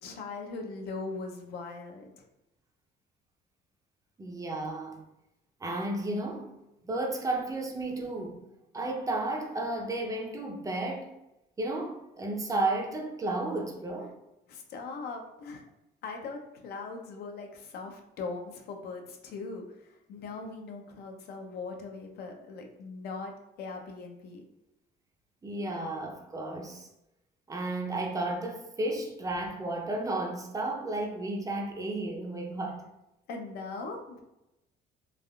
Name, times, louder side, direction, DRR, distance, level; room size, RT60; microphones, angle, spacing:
voice 1, 0.0-2.2 14.5-15.6 16.0-23.3 23.6-24.4 33.3-34.2, left 4 dB, 70° left, 0.6 m, -40 dB
voice 2, 4.2-5.0 5.6-6.5 6.8-8.4 8.7-11.1 11.6-14.1 25.4-26.9 27.5-32.9, right 2 dB, 20° right, 0.5 m, -33 dB
3.3 x 2.4 x 2.3 m
cardioid pair, 110°, 17 cm